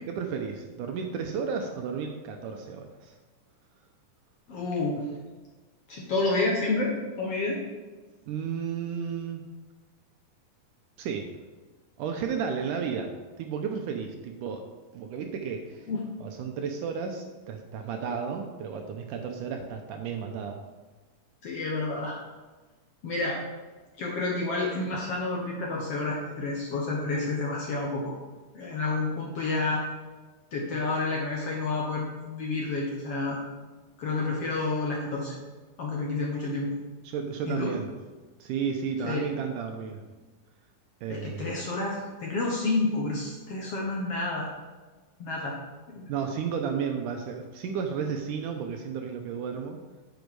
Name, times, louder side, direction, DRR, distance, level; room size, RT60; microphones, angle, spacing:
voice 1, 0.1-3.2 8.3-9.4 11.0-11.3 12.0-14.7 14.9-15.9 16.2-20.6 37.0-37.9 38.4-40.0 41.0-41.6 46.1-49.8, right 6 dB, 80° right, 4 dB, 2.0 m, -33 dB
voice 2, 4.5-5.1 5.9-7.6 15.9-16.0 21.4-22.2 23.0-23.4 24.0-28.1 28.5-29.8 30.5-33.4 34.0-35.4 35.8-36.8 37.5-37.8 39.0-39.2 41.1-44.5 45.2-45.6 45.9-46.1, left 3 dB, 60° left, -2 dB, 1.7 m, -29 dB
10.5 x 6.4 x 4.7 m, 1.3 s
omnidirectional pair, 4.1 m